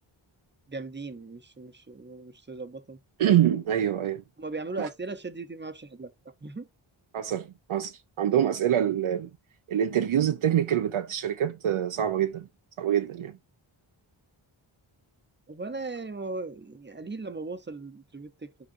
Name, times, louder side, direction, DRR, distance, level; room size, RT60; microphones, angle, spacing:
voice 1, 0.7-3.0 4.4-6.7 15.5-18.5, right 3 dB, 20° right, 0.9 m, -38 dB
voice 2, 3.2-4.2 7.1-9.3 9.7-12.5 12.8-13.3, right 10 dB, 75° right, 0.7 m, -25 dB
11.5 x 5.0 x 2.6 m
wide cardioid pair, 115°, 50 cm